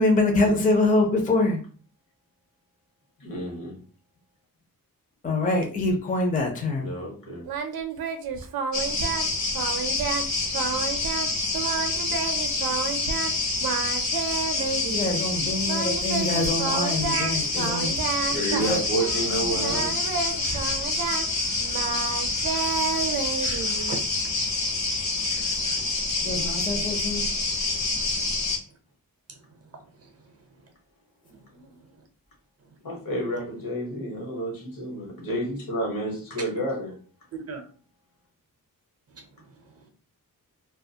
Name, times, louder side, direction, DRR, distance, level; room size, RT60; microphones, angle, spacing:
voice 1, 0.0-1.6 5.2-6.9 14.9-17.9 18.6-18.8 19.4-19.7 26.2-27.2, left 2 dB, 25° left, 0.5 m, -25 dB
voice 2, 3.2-3.8 6.8-7.4 18.3-19.9 32.8-37.0, right 1 dB, 70° left, 1.1 m, -30 dB
Singing, 7.5-9.3 9.5-10.3 10.5-11.3 11.5-13.3 13.6-15.1 15.7-19.3 19.6-24.0, right 6 dB, 90° right, 0.5 m, -30 dB
sound 1, 8.7-28.6, left 3 dB, 50° left, 0.8 m, -27 dB
voice 3, 17.1-17.6 18.3-18.6 19.5-19.6 21.8-24.0 24.5-26.5 27.8-28.2 28.7-28.8 29.3-30.7 31.2-32.1 32.6-32.8 37.3-37.6 39.1-39.9, right 3 dB, 45° right, 0.6 m, -43 dB
2.4 x 2.3 x 2.7 m
wide cardioid pair, 140°, 35 cm